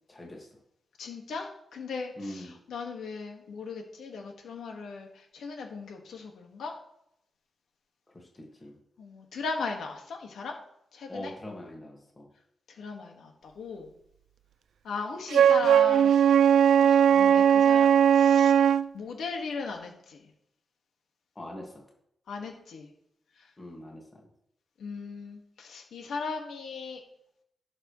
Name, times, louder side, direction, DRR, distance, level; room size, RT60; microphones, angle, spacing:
voice 1, 0.1-0.5 2.2-2.6 8.1-8.7 11.1-12.3 21.4-21.8 23.6-24.2, left 1 dB, 20° left, -1 dB, 2.0 m, -42 dB
voice 2, 1.0-6.7 9.0-10.5 10.9-11.3 12.8-13.9 14.8-16.2 16.8-17.9 18.1-18.6 18.9-20.2 22.3-22.9 24.8-27.0, left 4 dB, 90° left, 2 dB, 1.8 m, -37 dB
Wind instrument woodwind instrument, 15.3-18.9, right 9 dB, 80° right, 0.3 m, -19 dB
16.5 x 6.6 x 3.2 m, 0.77 s
wide cardioid pair, 150°, 0 cm